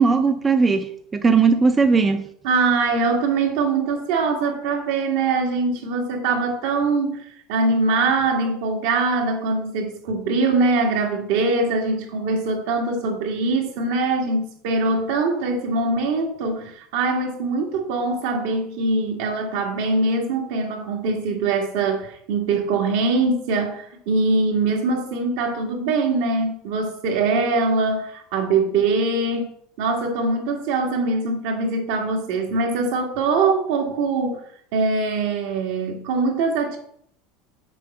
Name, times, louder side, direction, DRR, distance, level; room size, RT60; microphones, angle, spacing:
voice 1, 0.0-2.2, right 5 dB, 20° right, 7 dB, 0.6 m, -18 dB
voice 2, 2.4-7.2 7.5-29.5 29.8-34.4 34.7-36.8, right 3 dB, 75° right, 1 dB, 2.0 m, -22 dB
6.9 x 4.3 x 6.0 m, 0.66 s
supercardioid pair, 125°, 0 cm